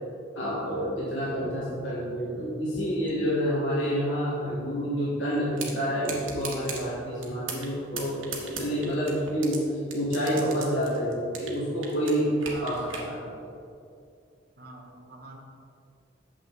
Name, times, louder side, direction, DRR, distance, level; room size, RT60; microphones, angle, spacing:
voice 1, 0.3-9.6 9.9-12.3 12.6-12.8 13.1-13.2, equal, 85° left, -7 dB, 1.7 m, -28 dB
sound 1, 0.6-1.8 2.7-4.2 4.7-6.9, equal, 10° left, 0.7 m, -48 dB
sound 2, 5.6-5.7 6.0-6.8 7.2-7.7 8.0-9.6 9.9-11.6 11.8-13.1, right 5 dB, 90° right, 1.5 m, -36 dB
voice 2, 12.4-12.8 14.6-15.4, right 2 dB, 50° right, 1 dB, 1.2 m, -45 dB
9.0 x 7.3 x 4.0 m, 2.5 s
head